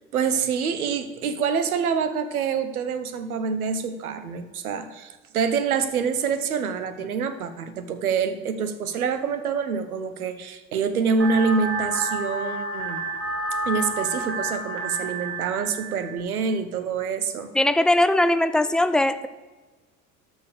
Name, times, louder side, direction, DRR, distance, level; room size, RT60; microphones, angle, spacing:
voice 1, 0.1-13.0 13.6-17.5, right 5 dB, 85° right, 11 dB, 0.9 m, -26 dB
sound 1, 11.2-16.2, right 2 dB, 30° right, 2.5 m, -30 dB
voice 2, 17.5-19.3, left 1 dB, ahead, 12 dB, 0.5 m, -20 dB
13.0 x 4.6 x 6.9 m, 1.3 s
hypercardioid pair, 60°, 42 cm